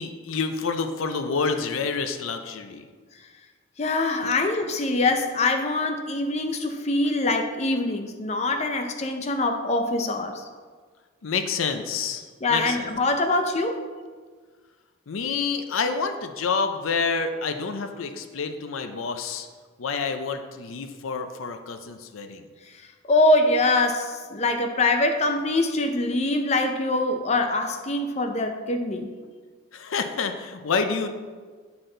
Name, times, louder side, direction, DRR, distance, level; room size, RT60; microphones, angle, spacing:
voice 1, 0.0-2.9 4.2-4.4 11.2-12.9 15.1-19.5 19.8-22.5 29.7-31.1, left 5 dB, 90° left, 7 dB, 0.5 m, -28 dB
voice 2, 3.8-10.4 12.4-13.8 23.1-29.1, left 2 dB, 35° left, 5 dB, 0.5 m, -24 dB
9.3 x 4.3 x 3.8 m, 1.5 s
head